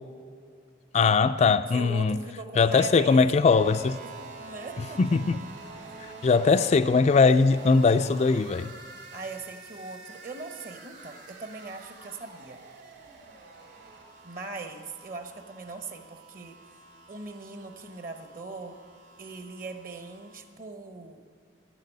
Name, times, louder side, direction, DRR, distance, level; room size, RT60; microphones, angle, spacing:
voice 1, 0.9-2.2 2.5-4.0 5.0-5.4 6.0-8.7, left 4 dB, 35° left, 10 dB, 0.3 m, -21 dB
voice 2, 1.7-3.3 4.0-5.2 5.9-6.0 9.1-12.6 14.2-16.6 17.1-18.8 19.2-21.2, right 3 dB, 45° right, 6 dB, 1.1 m, -40 dB
sound 1, 3.4-20.4, right 3 dB, 60° right, 3.4 m, -47 dB
12.0 x 10.5 x 9.3 m, 2.1 s
head